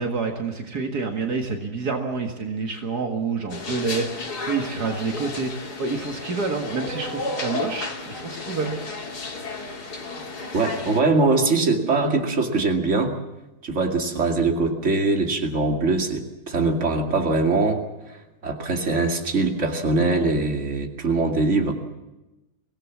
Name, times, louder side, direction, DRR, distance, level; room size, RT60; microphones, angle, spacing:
voice 1, 0.0-8.8, right 4 dB, 70° right, 4 dB, 2.4 m, -28 dB
sound 1, 3.5-11.0, left 3 dB, 75° left, 3.1 m, -33 dB
voice 2, 10.5-13.2 13.6-21.7, right 3 dB, 45° right, 4 dB, 2.8 m, -22 dB
24.5 x 18.0 x 7.4 m, 1.0 s
omnidirectional pair, 1.7 m